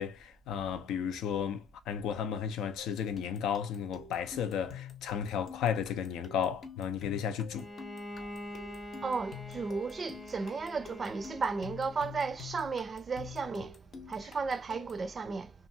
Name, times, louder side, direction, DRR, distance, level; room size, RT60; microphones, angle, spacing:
voice 1, 0.0-7.7, left 8 dB, 85° left, 0.4 m, -34 dB
sound 1, 2.8-15.1, left 7 dB, 60° left, 0.7 m, -48 dB
Bowed string instrument, 7.5-12.2, left 1 dB, 20° left, 0.8 m, -45 dB
voice 2, 9.0-13.8 14.1-15.5, right 4 dB, 40° right, 0.4 m, -34 dB
2.6 x 2.3 x 2.7 m
cardioid pair, 90°, 0 cm